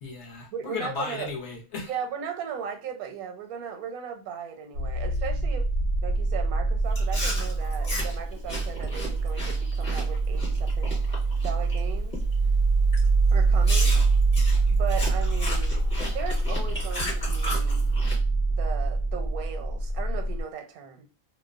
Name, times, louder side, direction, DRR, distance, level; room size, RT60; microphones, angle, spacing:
voice 1, 0.0-1.9, left 4 dB, 60° left, 0.9 m, -35 dB
voice 2, 0.5-1.3 1.9-5.7 6.0-11.0 11.4-12.2 13.3-14.0 14.7-17.9 18.5-21.1, right 7 dB, 85° right, 1.1 m, -37 dB
sound 1, 4.7-20.4, right 3 dB, 60° right, 0.7 m, -25 dB
Chewing mastication, 6.9-11.8 12.1-12.4 12.9-13.1 13.6-18.2, left 1 dB, 35° left, 1.0 m, -35 dB
2.6 x 2.1 x 2.3 m
omnidirectional pair, 1.5 m